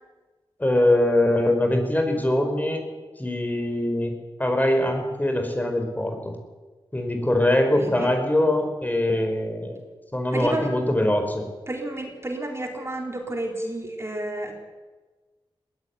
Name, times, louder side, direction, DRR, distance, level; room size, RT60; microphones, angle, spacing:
voice 1, 0.6-2.8 3.2-4.1 4.4-6.4 6.9-9.8 10.1-11.4, left 1 dB, 20° left, 4 dB, 4.9 m, -22 dB
voice 2, 7.8-8.1 10.3-10.7 11.7-14.5, right 1 dB, 30° right, 2 dB, 4.3 m, -31 dB
20.5 x 16.5 x 9.7 m, 1.3 s
cardioid pair, 60°, 9 cm